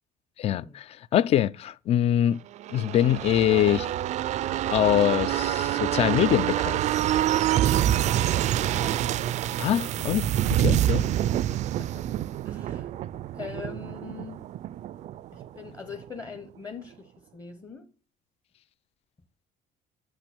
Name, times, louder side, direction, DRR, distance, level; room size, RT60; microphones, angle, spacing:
voice 1, 0.4-2.4 2.7-3.9 4.7-6.8 9.6-11.0, left 11 dB, 35° left, 0.4 m, -24 dB
sound 1, 2.6-16.0 16.4-16.5, right 12 dB, 40° right, 0.4 m, -27 dB
voice 2, 8.7-9.1 11.5-12.1 12.4-12.9 13.3-14.4 15.3-17.9, left 5 dB, 20° left, 0.9 m, -42 dB
9.0 x 6.3 x 6.0 m
cardioid pair, 160°, 17 cm